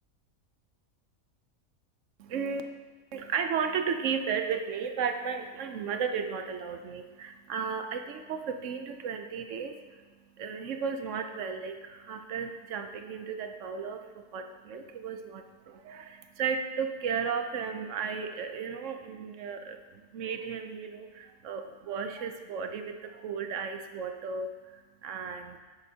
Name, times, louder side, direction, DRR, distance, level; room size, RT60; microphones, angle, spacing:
voice 1, 2.2-2.6 3.1-25.6, right 6 dB, 65° right, 6 dB, 0.9 m, -34 dB
10.5 x 8.1 x 2.8 m, 1.3 s
omnidirectional pair, 1.5 m